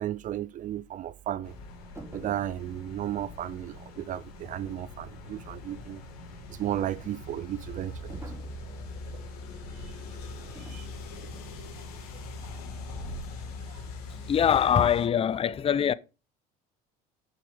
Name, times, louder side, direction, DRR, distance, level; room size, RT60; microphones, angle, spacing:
voice 1, 0.0-1.5 2.1-6.0 6.5-8.2 10.6-10.9 11.8-11.9 13.7-13.8, right 12 dB, 45° right, 0.4 m, -34 dB
sound 1, 1.4-15.1, left 2 dB, 80° left, 2.1 m, -42 dB
sound 2, 1.9-2.5 8.1-8.6 10.5-10.9 11.2-11.5, right 3 dB, 15° right, 3.0 m, -46 dB
voice 2, 14.3-15.9, left 8 dB, 30° left, 0.5 m, -23 dB
6.7 x 6.7 x 5.3 m
hypercardioid pair, 80°, 19 cm